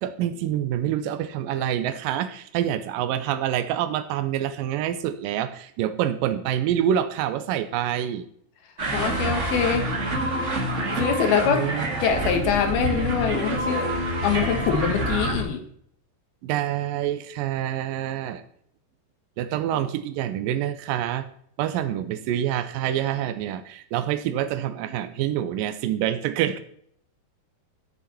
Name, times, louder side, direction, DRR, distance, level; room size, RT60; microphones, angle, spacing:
voice 1, 0.0-8.2 11.5-12.0 16.4-18.4 19.4-21.2 21.6-26.6, right 11 dB, 85° right, 10 dB, 2.0 m, -26 dB
sound 1, 8.8-15.4, right 1 dB, 65° right, 0.7 m, -27 dB
voice 2, 8.9-9.9 11.0-11.7 12.0-13.9 14.2-15.6, left 7 dB, 70° left, 7 dB, 3.2 m, -24 dB
14.5 x 6.9 x 4.2 m, 0.65 s
omnidirectional pair, 4.8 m